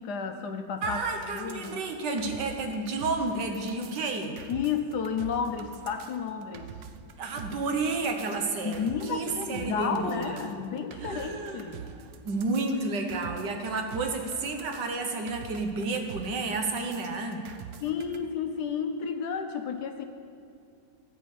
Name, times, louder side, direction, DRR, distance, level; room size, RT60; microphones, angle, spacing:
voice 1, 0.0-1.0 1.3-1.9 4.5-6.7 8.6-11.9 17.8-20.0, left 6 dB, 65° left, 6 dB, 1.2 m, -32 dB
voice 2, 0.8-4.4 7.2-10.4 11.0-12.0 12.2-17.5, right 3 dB, 65° right, 4 dB, 1.6 m, -31 dB
sound 1, 0.8-18.2, right 7 dB, 90° right, 0.6 m, -45 dB
14.5 x 5.2 x 8.4 m, 2.5 s
omnidirectional pair, 2.0 m